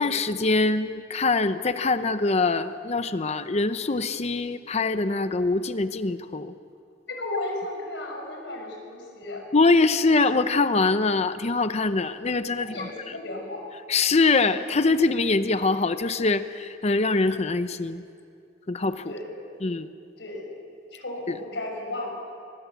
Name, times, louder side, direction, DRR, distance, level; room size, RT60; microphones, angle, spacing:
voice 1, 0.0-6.5 9.5-12.9 13.9-18.0 18.7-19.1 19.6-19.9 21.3-21.4, left 3 dB, 35° left, 11 dB, 0.7 m, -23 dB
voice 2, 7.1-9.4 12.6-13.7 19.1-19.3 20.2-20.5 20.9-22.1, left 2 dB, 70° left, 1 dB, 6.1 m, -34 dB
23.5 x 21.0 x 8.2 m, 2.5 s
head